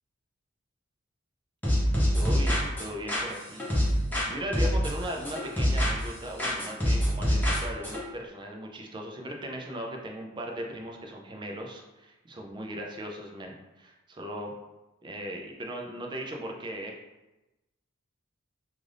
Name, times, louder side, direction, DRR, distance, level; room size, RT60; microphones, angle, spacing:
sound 1, 1.6-4.3 4.5-6.1 6.4-8.0, equal, 10° left, 0.7 m, -26 dB
voice 1, 2.1-3.6 4.3-14.5 15.0-17.0, equal, 20° right, 1 dB, 0.4 m, -38 dB
2.5 x 2.5 x 3.2 m, 1.0 s
head